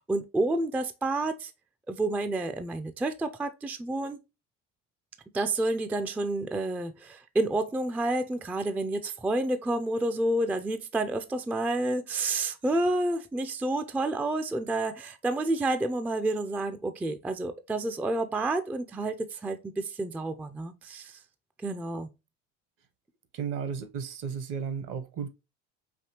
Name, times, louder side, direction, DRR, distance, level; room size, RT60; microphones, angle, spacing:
voice 1, 0.0-1.5 1.9-4.2 5.3-21.2 21.6-22.1, right 2 dB, 5° right, 0.3 m, -29 dB
voice 2, 23.3-25.3, right 6 dB, 60° right, 0.9 m, -34 dB
5.1 x 2.7 x 2.8 m
hypercardioid pair, 70°, 37 cm